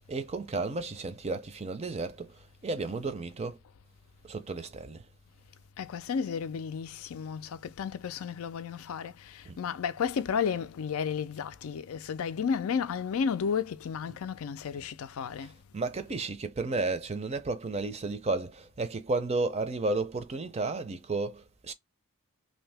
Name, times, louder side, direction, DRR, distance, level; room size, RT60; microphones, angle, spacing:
voice 1, 0.1-2.3 2.6-3.6 4.3-5.0 9.5-9.6 14.1-14.2 15.7-21.7, right 3 dB, 30° right, 0.5 m, -32 dB
voice 2, 5.8-15.5, left 6 dB, 75° left, 0.4 m, -33 dB
2.7 x 2.7 x 3.3 m
head